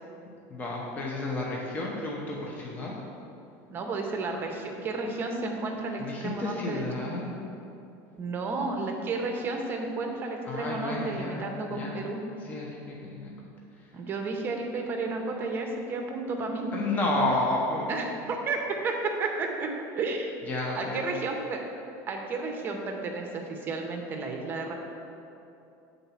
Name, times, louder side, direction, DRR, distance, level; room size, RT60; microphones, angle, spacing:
voice 1, 0.5-2.9 6.0-7.3 10.5-12.0 12.4-13.3 16.7-17.9 20.5-21.0, left 2 dB, 20° left, -3 dB, 0.7 m, -31 dB
voice 2, 3.7-7.1 8.2-12.2 13.9-16.7 17.9-19.7 19.9-20.3 20.8-21.6 22.1-24.7, right 3 dB, 25° right, 2 dB, 0.7 m, -32 dB
7.1 x 3.9 x 5.7 m, 2.7 s
cardioid pair, 165°, 8 cm